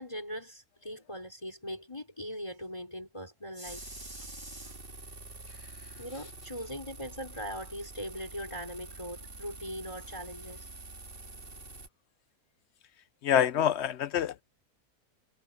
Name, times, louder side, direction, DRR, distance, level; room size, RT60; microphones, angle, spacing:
voice 1, 0.0-4.8 6.0-10.7, equal, 20° left, 4.9 m, -41 dB
sound 1, 3.6-11.9, right 3 dB, 35° right, 2.3 m, -47 dB
voice 2, 13.2-14.4, left 9 dB, 60° left, 0.7 m, -26 dB
omnidirectional pair, 1.6 m